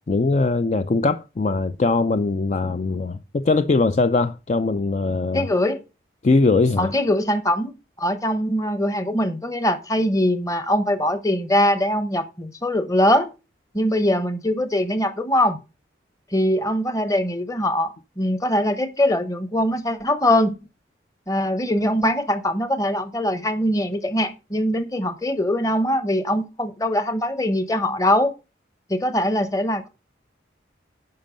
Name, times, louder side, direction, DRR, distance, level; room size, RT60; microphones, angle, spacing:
voice 1, 0.1-5.5 6.2-6.9, left 3 dB, 40° left, 0.4 m, -21 dB
voice 2, 5.3-5.8 6.8-13.3 13.7-15.6 16.3-20.6 21.3-28.3 28.9-29.9, left 1 dB, 20° left, 0.9 m, -22 dB
10.5 x 5.3 x 5.1 m
head